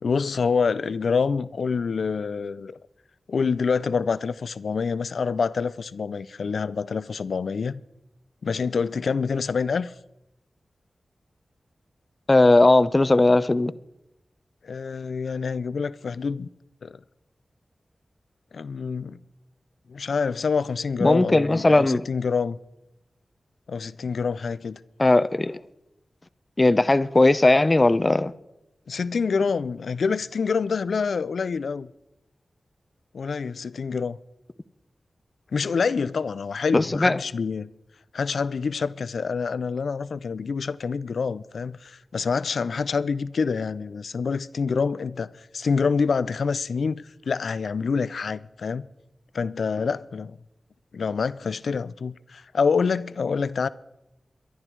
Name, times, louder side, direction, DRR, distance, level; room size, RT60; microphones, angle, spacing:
voice 1, 0.0-2.8 3.3-7.8 8.4-9.9 14.6-16.5 16.8-17.0 18.5-19.2 19.9-22.6 23.7-24.8 28.9-31.9 33.1-34.2 35.5-37.7 38.1-48.9 49.3-50.4 50.9-53.7, left 5 dB, 80° left, 0.5 m, -26 dB
voice 2, 12.3-13.7 21.0-22.0 25.0-25.6 26.6-28.3 36.7-37.2, left 2 dB, 35° left, 0.7 m, -18 dB
23.5 x 11.0 x 4.6 m
cardioid pair, 40°, 0 cm